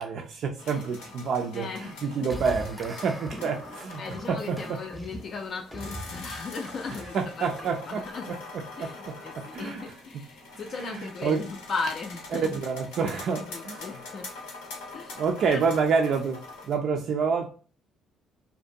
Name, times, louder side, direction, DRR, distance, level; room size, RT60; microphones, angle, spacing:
voice 1, 0.0-4.8 6.9-9.2 9.5-10.2 10.5-11.4 12.3-14.0 15.1-17.5, right 5 dB, 65° right, 0.3 m, -29 dB
sound 1, 0.6-16.7, left 3 dB, 85° left, 0.7 m, -44 dB
voice 2, 1.5-2.4 3.1-3.2 4.0-8.4 8.8-12.6 13.4-14.3 14.9-15.6, left 4 dB, 55° left, 0.3 m, -37 dB
sound 2, 2.3-8.1, equal, ahead, 0.6 m, -42 dB
2.5 x 2.2 x 2.5 m
hypercardioid pair, 60°, 0 cm